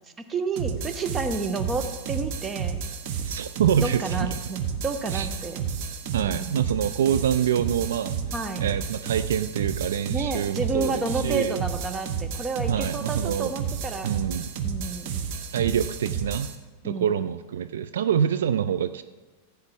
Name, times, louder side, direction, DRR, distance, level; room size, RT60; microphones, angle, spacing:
voice 1, 0.2-2.8 3.8-5.6 6.2-6.6 8.3-8.6 10.1-14.1 14.6-15.2 16.8-17.1, right 3 dB, 20° right, 8 dB, 0.9 m, -30 dB
sound 1, 0.6-16.6, right 6 dB, 45° right, 0.9 m, -31 dB
voice 2, 3.2-4.3 5.1-5.3 6.1-8.2 8.6-11.6 12.7-13.5 14.0-14.5 15.5-16.5 16.8-19.0, right 9 dB, 60° right, 11 dB, 0.3 m, -26 dB
15.0 x 8.0 x 3.5 m, 1.3 s
figure-of-eight pair, 90°, 0 cm